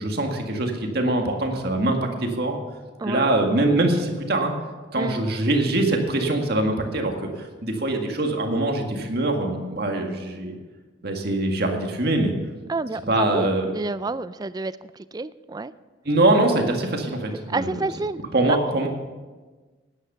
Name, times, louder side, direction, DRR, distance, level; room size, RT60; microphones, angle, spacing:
voice 1, 0.0-2.6 3.0-4.5 4.9-10.6 11.0-12.3 13.1-13.7 16.1-17.8 18.3-18.9, right 2 dB, 55° right, 3 dB, 1.9 m, -23 dB
voice 2, 3.0-3.3 5.0-5.2 12.7-15.7 17.5-18.2 18.5-18.7, right 3 dB, 20° right, 16 dB, 0.3 m, -29 dB
12.0 x 10.0 x 6.8 m, 1.3 s
head